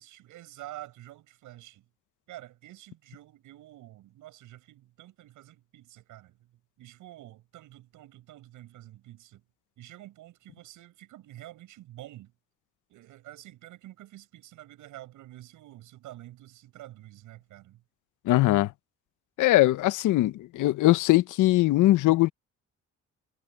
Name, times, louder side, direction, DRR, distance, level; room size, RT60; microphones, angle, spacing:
voice 1, 0.0-1.9 2.3-6.5 6.8-9.4 9.8-12.3 12.9-17.8, right 15 dB, 90° right, 7.0 m, -48 dB
voice 2, 18.3-18.7 19.4-22.3, left 17 dB, 85° left, 0.8 m, -21 dB
cardioid pair, 90°, 30 cm